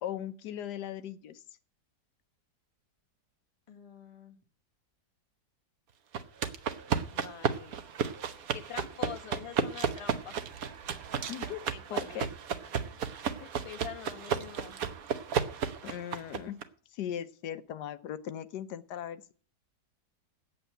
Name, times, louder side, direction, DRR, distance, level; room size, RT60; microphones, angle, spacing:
voice 1, 0.0-1.4 11.3-11.6 11.9-12.3 13.4-13.5 15.8-16.6 16.9-19.3, left 10 dB, 85° left, 12 dB, 1.3 m, -38 dB
voice 2, 3.7-4.4 7.1-7.8 8.2-10.4 11.2-12.3 12.7-13.0 13.6-14.8, left 7 dB, 20° left, 5 dB, 1.2 m, -46 dB
sound 1, 6.1-16.6, right 7 dB, 65° right, 1.3 m, -33 dB
8.2 x 8.0 x 9.0 m, 0.42 s
omnidirectional pair, 1.7 m